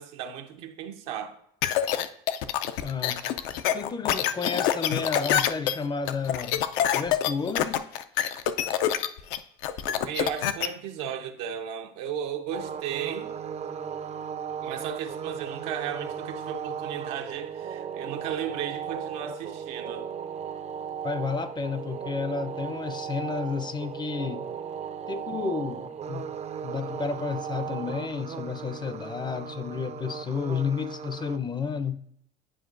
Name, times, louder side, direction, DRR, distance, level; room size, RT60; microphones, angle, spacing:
voice 1, 0.0-1.4 9.9-13.3 14.6-20.1, right 8 dB, 85° right, 0.8 m, -35 dB
sound 1, 1.6-10.7, left 10 dB, 80° left, 0.5 m, -26 dB
voice 2, 2.8-6.6 6.9-7.8 21.0-24.5 25.1-26.3 26.6-32.0, left 5 dB, 20° left, 0.5 m, -31 dB
sound 2, 12.5-31.4, right 7 dB, 35° right, 0.4 m, -36 dB
10.0 x 4.5 x 2.5 m
supercardioid pair, 90°, 20 cm